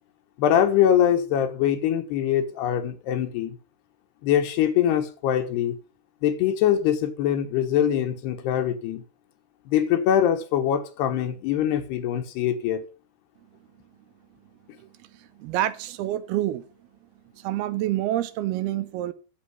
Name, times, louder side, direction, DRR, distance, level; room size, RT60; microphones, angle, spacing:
voice 1, 0.4-3.6 4.2-5.8 6.2-9.0 9.7-12.8, left 10 dB, 80° left, 3.3 m, -23 dB
voice 2, 14.8-16.6 17.4-19.1, right 14 dB, 80° right, 2.6 m, -28 dB
8.8 x 7.6 x 7.8 m
omnidirectional pair, 4.7 m